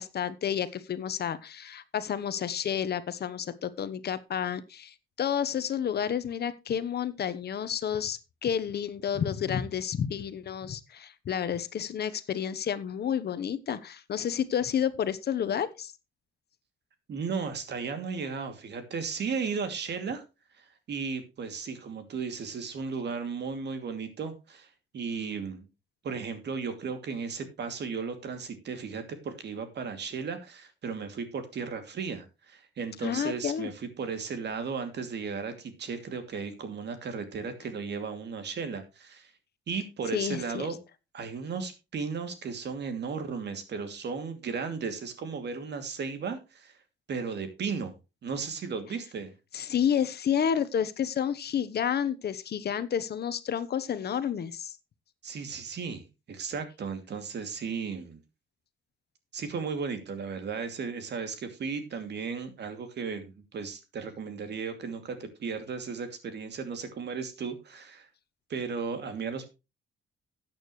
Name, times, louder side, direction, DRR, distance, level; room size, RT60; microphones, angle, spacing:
voice 1, 0.0-15.9 33.0-33.7 40.1-40.7 49.5-54.8, left 8 dB, 55° left, 13 dB, 1.0 m, -30 dB
voice 2, 17.1-20.2 20.5-25.7 26.0-39.3 39.7-40.8 41.1-46.8 47.1-48.0 48.2-49.3 55.2-58.2 59.3-68.1 68.5-69.5, right 5 dB, 60° right, 8 dB, 2.6 m, -35 dB
13.0 x 8.9 x 3.1 m, 0.27 s
cardioid pair, 90°, 20 cm